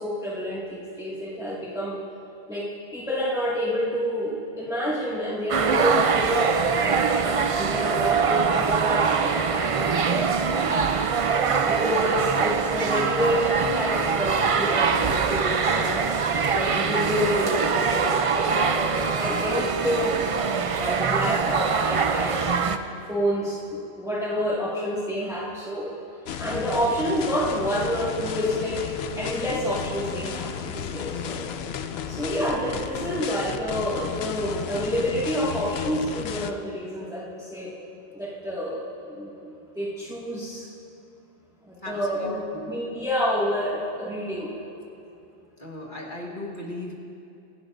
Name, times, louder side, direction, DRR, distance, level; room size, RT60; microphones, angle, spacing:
voice 1, 0.0-2.0 2.5-2.7 2.9-9.9 10.5-10.8 11.1-11.3 11.6-16.1 16.5-20.2 20.6-22.5 23.1-25.9 26.4-28.8 29.2-31.5 32.1-37.7 38.1-40.7 41.6-42.4 42.7-44.5, equal, 5° right, -8 dB, 1.9 m, -28 dB
sound 1, 5.5-22.8, right 5 dB, 45° right, 0.4 m, -23 dB
sound 2, 26.3-36.5, left 8 dB, 75° left, 0.9 m, -33 dB
voice 2, 41.8-42.7 45.6-46.9, left 2 dB, 50° left, -1 dB, 1.8 m, -36 dB
24.5 x 11.0 x 2.6 m, 2.8 s
omnidirectional pair, 1.1 m